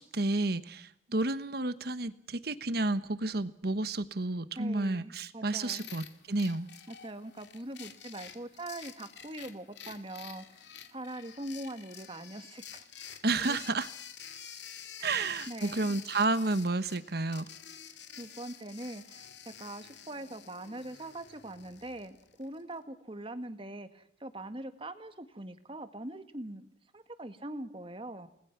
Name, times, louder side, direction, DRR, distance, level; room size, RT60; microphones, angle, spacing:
voice 1, 0.0-6.7 13.2-13.9 15.0-17.4, right 2 dB, 60° right, 13 dB, 1.2 m, -31 dB
voice 2, 4.6-5.9 6.9-13.6 15.0-16.0 18.2-26.7 26.9-28.3, right 1 dB, 30° right, 9 dB, 1.8 m, -42 dB
sound 1, 5.6-22.6, left 8 dB, 70° left, 2.4 m, -49 dB
30.0 x 20.0 x 6.0 m, 0.71 s
head